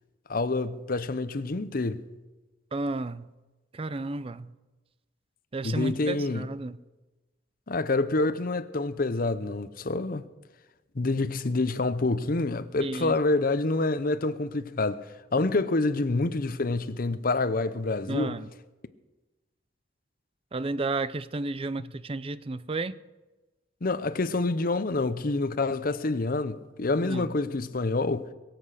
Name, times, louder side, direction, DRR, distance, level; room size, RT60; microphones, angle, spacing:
voice 1, 0.3-2.1 5.6-6.5 7.7-10.3 10.9-18.4 23.8-28.3, left 3 dB, 50° left, 0.8 m, -27 dB
voice 2, 2.7-3.3 3.7-4.5 5.5-6.8 12.8-13.2 18.1-18.5 20.5-22.9 27.0-27.3, right 3 dB, 30° right, 0.5 m, -32 dB
22.5 x 7.8 x 6.5 m
head